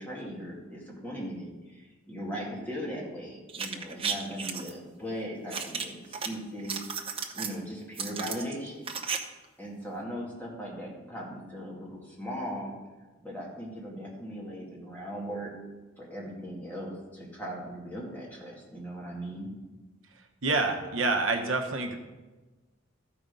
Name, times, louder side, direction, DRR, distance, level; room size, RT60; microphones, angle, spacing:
voice 1, 0.0-6.8 7.3-8.9 9.6-12.7 13.2-15.5 16.0-19.5, equal, 10° left, -3 dB, 2.1 m, -38 dB
sound 1, 3.5-4.7 5.5-6.3 6.6-7.5 8.0-9.2 9.4-9.5, right 6 dB, 25° right, 0.7 m, -34 dB
voice 2, 20.4-21.9, right 3 dB, 70° right, 3 dB, 1.0 m, -27 dB
13.5 x 5.0 x 5.3 m, 1.2 s
head